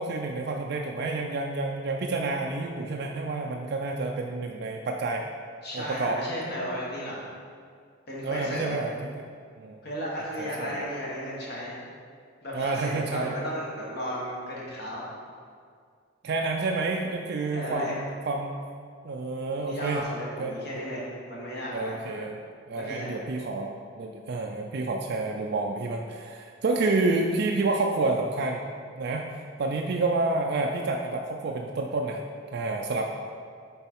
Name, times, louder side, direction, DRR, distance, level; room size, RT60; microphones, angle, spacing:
voice 1, 0.0-5.2 5.7-6.2 8.2-9.1 9.6-9.8 10.4-10.8 12.5-13.4 16.2-18.5 19.0-20.0 20.4-20.6 21.7-22.4 22.7-28.6 29.0-29.3 29.6-32.2 32.5-33.1, right 3 dB, 55° right, 1 dB, 0.4 m, -29 dB
voice 2, 5.6-7.2 8.1-8.8 9.8-11.8 12.4-15.0 17.5-18.0 19.6-22.2 22.7-23.1, equal, 55° left, -5 dB, 1.5 m, -34 dB
6.9 x 3.8 x 4.5 m, 2.1 s
head